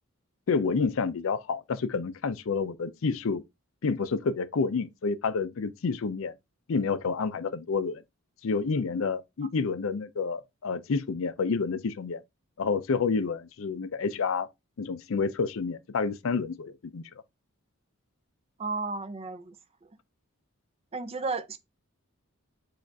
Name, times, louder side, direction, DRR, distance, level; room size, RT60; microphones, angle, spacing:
voice 1, 0.5-3.4 3.8-6.3 6.7-8.0 8.4-12.2 12.6-14.5 14.8-17.0, left 4 dB, 65° left, 0.4 m, -29 dB
voice 2, 18.6-19.5 20.9-21.6, right 3 dB, 25° right, 0.5 m, -33 dB
4.8 x 2.4 x 4.5 m
head